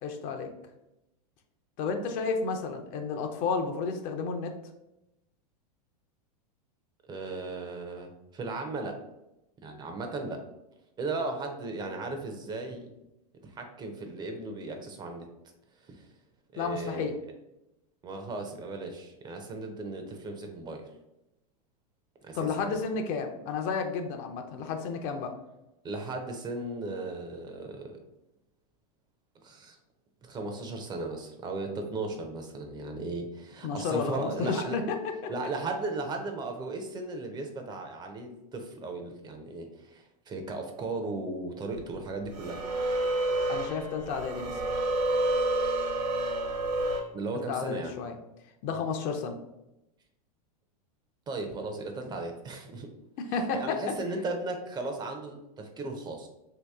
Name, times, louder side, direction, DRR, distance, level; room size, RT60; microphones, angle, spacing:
voice 1, 0.0-0.5 1.8-4.5 16.6-17.1 22.3-25.3 33.6-34.8 35.2-35.3 43.5-44.6 47.5-48.1 48.6-49.3 53.2-53.8, left 5 dB, 40° left, 5 dB, 0.5 m, -32 dB
voice 2, 7.1-9.0 9.6-10.4 11.0-12.9 13.4-15.3 15.8-16.1 16.5-17.3 18.0-20.9 22.2-22.8 25.8-28.0 29.4-29.8 30.2-34.8 35.3-42.6 47.1-47.9 51.3-52.9 53.5-56.3, right 3 dB, 20° right, 4 dB, 0.5 m, -36 dB
sound 1, 41.8-41.9 42.3-47.0, right 1 dB, 80° right, 1.1 m, -29 dB
2.8 x 2.8 x 3.4 m, 0.90 s
hypercardioid pair, 115°, 20 cm